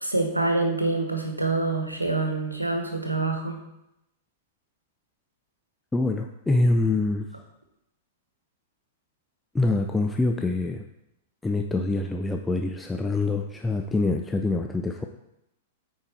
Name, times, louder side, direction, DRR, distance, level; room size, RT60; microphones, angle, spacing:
voice 1, 0.0-3.6, right 2 dB, 85° right, 4 dB, 1.3 m, -26 dB
voice 2, 5.9-7.3 9.5-10.8 11.4-15.1, left 2 dB, 10° left, 3 dB, 0.5 m, -25 dB
8.7 x 4.7 x 4.4 m, 0.85 s
figure-of-eight pair, 100°, 0 cm